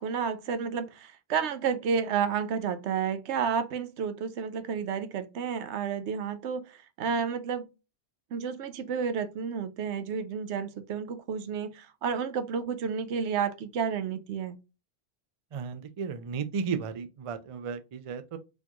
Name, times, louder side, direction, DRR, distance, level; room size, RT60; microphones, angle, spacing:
voice 1, 0.0-7.7 8.3-14.6, right 6 dB, 85° right, 0.9 m, -31 dB
voice 2, 15.5-18.4, right 6 dB, 50° right, 0.4 m, -34 dB
4.2 x 2.9 x 2.3 m
omnidirectional pair, 1.1 m